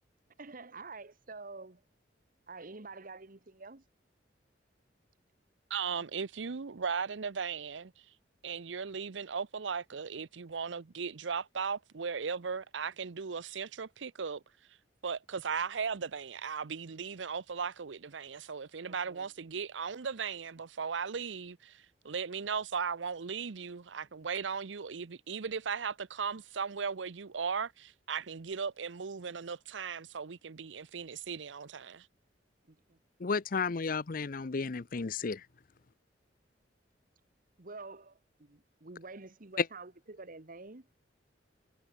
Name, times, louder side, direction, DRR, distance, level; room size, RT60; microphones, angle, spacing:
voice 1, 0.4-1.8 2.5-3.8 18.9-19.3 32.7-33.0 37.6-40.9, right 3 dB, 50° right, 1.4 m, -48 dB
voice 2, 5.7-7.9 8.4-14.4 15.0-32.1, right 6 dB, 90° right, 0.7 m, -37 dB
voice 3, 33.2-35.4, left 4 dB, 50° left, 0.6 m, -33 dB
head